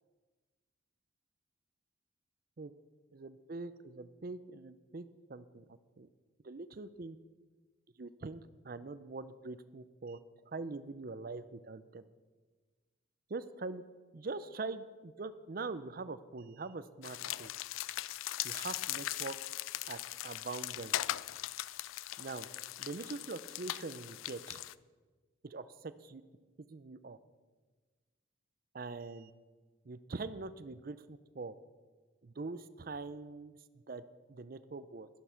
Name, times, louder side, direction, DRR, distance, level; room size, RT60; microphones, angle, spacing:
voice 1, 3.1-6.1 6.4-7.2 8.0-10.2 10.5-12.0 13.3-13.8 14.1-17.5 18.4-19.4 19.9-21.0 22.2-22.5 22.8-24.6 25.4-26.2 26.7-27.2 28.7-29.3 29.8-31.6 32.2-33.6 33.9-35.1, right 3 dB, 45° right, 13 dB, 0.5 m, -43 dB
sound 1, 17.0-24.7, left 14 dB, 90° left, 0.4 m, -40 dB
11.0 x 11.0 x 5.8 m, 1.3 s
head